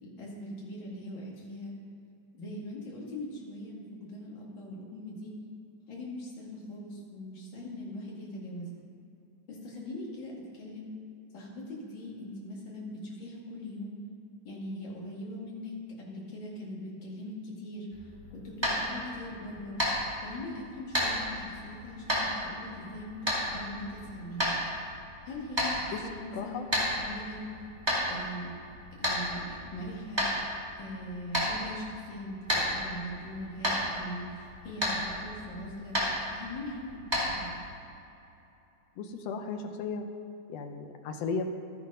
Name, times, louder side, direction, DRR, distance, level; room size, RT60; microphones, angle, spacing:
voice 1, 0.0-1.7 2.3-5.3 5.9-8.7 9.5-10.9 11.3-14.0 14.4-17.9 18.3-19.8 20.2-24.5 25.2-27.4 28.1-28.6 29.0-30.3 30.8-36.0 36.3-37.0 37.2-37.5, left 1 dB, 40° left, -4 dB, 2.6 m, -41 dB
sound 1, 17.9-37.8, equal, 10° right, 2.1 m, -33 dB
voice 2, 26.3-26.7 39.0-40.0 40.5-41.5, left 5 dB, 75° left, 5 dB, 1.6 m, -35 dB
12.5 x 8.3 x 5.4 m, 2.7 s
omnidirectional pair, 3.6 m